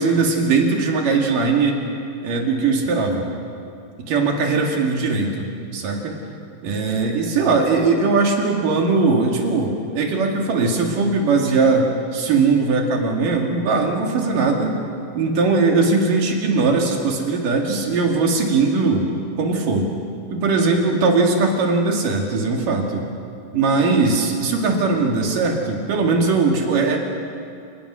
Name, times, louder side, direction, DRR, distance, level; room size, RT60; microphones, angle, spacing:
voice 1, 0.0-1.8 2.2-3.3 4.1-6.2 6.6-14.8 15.1-19.1 19.4-19.9 20.3-23.1 23.5-27.0, right 4 dB, 65° right, 2 dB, 3.8 m, -20 dB
29.5 x 18.5 x 6.3 m, 2.4 s
omnidirectional pair, 4.2 m